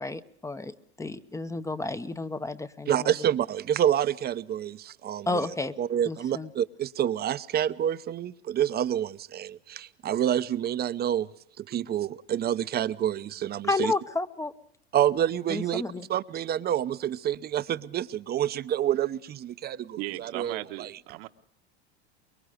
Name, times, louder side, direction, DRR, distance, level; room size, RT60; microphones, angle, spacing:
voice 1, 0.0-3.1 5.3-5.7 6.0-6.5 13.7-14.5 15.5-16.1, left 2 dB, 10° left, 0.8 m, -31 dB
voice 2, 2.9-5.5 5.8-11.3 11.6-13.9 14.9-15.8 16.1-20.9, right 10 dB, 30° right, 0.8 m, -28 dB
voice 3, 20.0-21.3, right 18 dB, 60° right, 1.3 m, -37 dB
25.0 x 22.0 x 5.0 m
hypercardioid pair, 105°, 33 cm